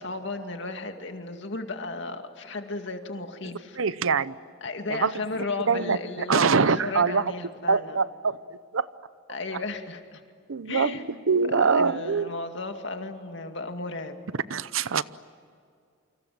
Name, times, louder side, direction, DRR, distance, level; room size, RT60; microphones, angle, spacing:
voice 1, 0.0-3.8 4.6-8.0 9.3-10.2 10.7-11.0 11.5-14.2, left 3 dB, 60° left, 5 dB, 2.3 m, -34 dB
voice 2, 3.8-4.3 4.9-5.1 5.7-6.0 6.3-7.2 7.7-8.4 8.7-8.9 10.5-10.9 11.3-12.3 14.5-15.0, right 5 dB, 80° right, 16 dB, 0.8 m, -23 dB
28.5 x 26.0 x 7.7 m, 2.3 s
head